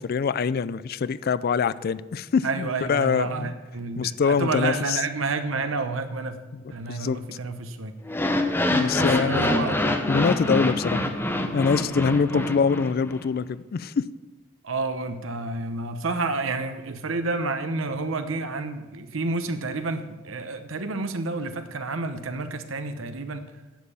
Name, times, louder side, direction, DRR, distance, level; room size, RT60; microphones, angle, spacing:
voice 1, 0.0-3.5 4.0-5.0 6.5-6.6 6.9-7.2 8.7-9.7 10.1-11.0 11.5-14.1, left 5 dB, 50° left, 18 dB, 0.4 m, -24 dB
voice 2, 2.4-6.4 6.7-7.9 8.9-9.9 10.9-11.0 12.3-12.5 14.6-23.4, right 3 dB, 75° right, 8 dB, 0.9 m, -30 dB
sound 1, 8.1-13.2, left 1 dB, 10° left, 0.7 m, -25 dB
10.5 x 7.5 x 6.9 m, 1.2 s
head